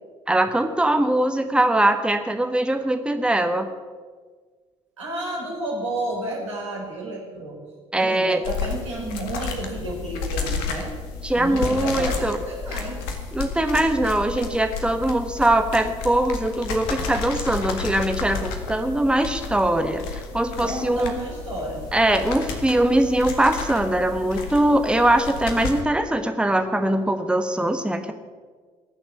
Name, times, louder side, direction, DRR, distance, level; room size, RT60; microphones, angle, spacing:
voice 1, 0.3-3.7 7.9-8.4 11.2-12.4 13.3-21.1 21.9-28.1, right 1 dB, 5° right, 7 dB, 1.3 m, -21 dB
voice 2, 5.0-7.6 7.9-10.9 11.3-13.1 20.6-21.8, right 1 dB, 85° right, -3 dB, 4.1 m, -31 dB
sound 1, 8.4-25.8, left 5 dB, 70° left, 1.8 m, -32 dB
19.0 x 7.1 x 8.4 m, 1.5 s
figure-of-eight pair, 50°, 15 cm